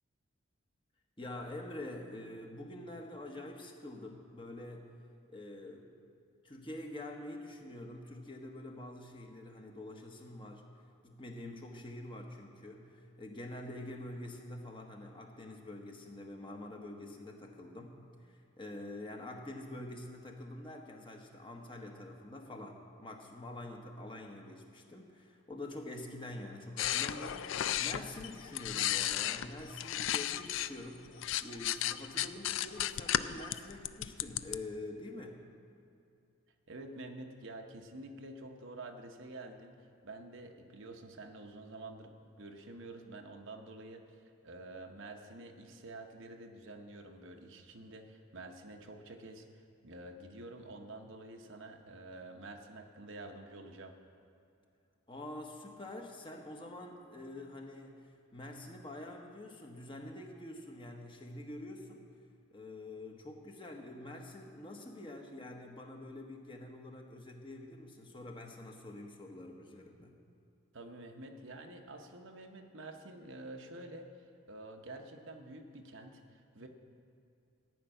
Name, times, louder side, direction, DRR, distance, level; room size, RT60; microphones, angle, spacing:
voice 1, 1.2-5.0 5.3-6.0 6.4-10.7 11.0-18.0 18.2-35.4 55.1-62.2 62.5-70.1, left 1 dB, 25° left, 2 dB, 1.0 m, -46 dB
sound 1, 26.8-30.7 31.0-34.6, left 12 dB, 65° left, 0.3 m, -34 dB
voice 2, 36.7-39.7 40.0-54.0 70.7-74.1 74.5-76.7, right 2 dB, 65° right, 4 dB, 1.0 m, -48 dB
14.0 x 6.0 x 8.9 m, 2.5 s
head